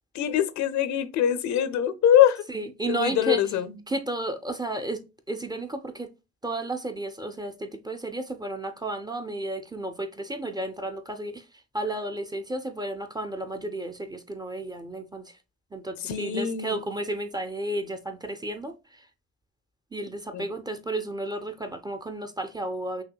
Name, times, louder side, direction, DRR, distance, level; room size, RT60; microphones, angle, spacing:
voice 1, 0.1-2.4 2.9-3.8 16.0-16.8 20.3-20.5, left 10 dB, 70° left, 0.6 m, -23 dB
voice 2, 2.5-3.4 3.9-6.1 6.4-11.4 11.7-15.3 15.7-19.1 19.9-23.0, right 2 dB, 15° right, 0.4 m, -32 dB
5.7 x 2.7 x 2.2 m
cardioid pair, 90°, 30 cm